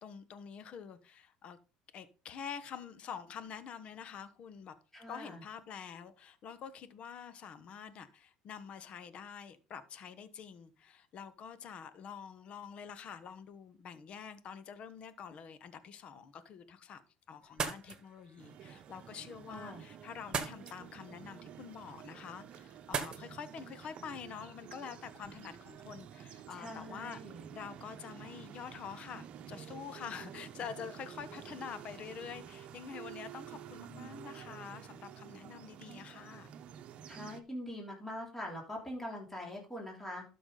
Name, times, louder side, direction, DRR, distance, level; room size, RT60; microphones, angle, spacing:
voice 1, 0.0-1.6 1.9-4.7 5.1-17.0 17.3-27.2 27.5-36.5, left 7 dB, 50° left, 1.2 m, -47 dB
voice 2, 4.9-5.4 19.5-19.8 26.5-27.4 37.1-40.2, left 1 dB, 10° left, 3.3 m, -43 dB
sound 1, 17.4-25.8, right 6 dB, 35° right, 1.8 m, -44 dB
sound 2, 18.4-37.4, right 9 dB, 50° right, 1.0 m, -50 dB
12.5 x 6.1 x 3.9 m
supercardioid pair, 110°, 2 cm